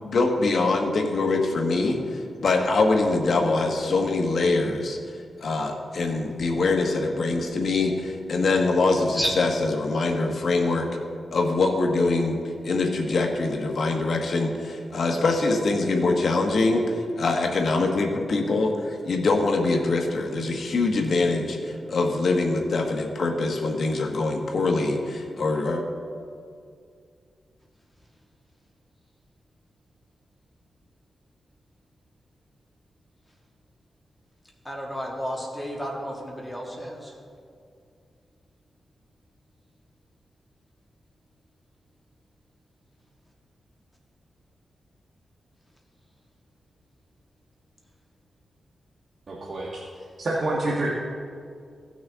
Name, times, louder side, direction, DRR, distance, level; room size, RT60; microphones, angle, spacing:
voice 1, 0.1-5.0 5.4-10.9 11.3-12.4 12.6-25.8, left 3 dB, 65° left, 2 dB, 1.3 m, -24 dB
voice 2, 34.7-37.1, equal, 10° left, -2 dB, 2.0 m, -31 dB
voice 3, 49.3-49.8 50.2-50.9, right 2 dB, 50° right, -4 dB, 1.3 m, -27 dB
15.5 x 6.3 x 3.6 m, 2.3 s
wide cardioid pair, 100°, 0 cm